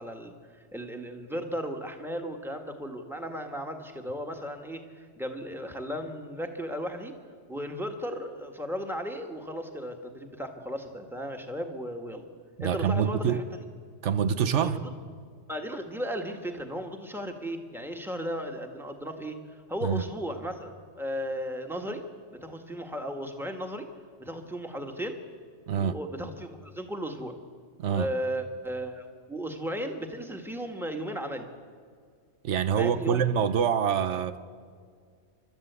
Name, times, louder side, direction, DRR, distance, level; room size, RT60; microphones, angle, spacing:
voice 1, 0.0-7.1 7.5-12.2 12.6-13.4 14.6-14.9 15.5-22.0 22.3-23.9 24.2-25.2 25.8-27.4 27.9-31.5 32.7-33.3, equal, ahead, 1.6 m, -35 dB
voice 2, 12.6-13.4 14.0-14.8 19.8-20.1 25.7-26.0 27.8-28.1 32.4-34.4, right 7 dB, 90° right, 1.2 m, -26 dB
30.0 x 13.0 x 8.2 m
omnidirectional pair, 1.2 m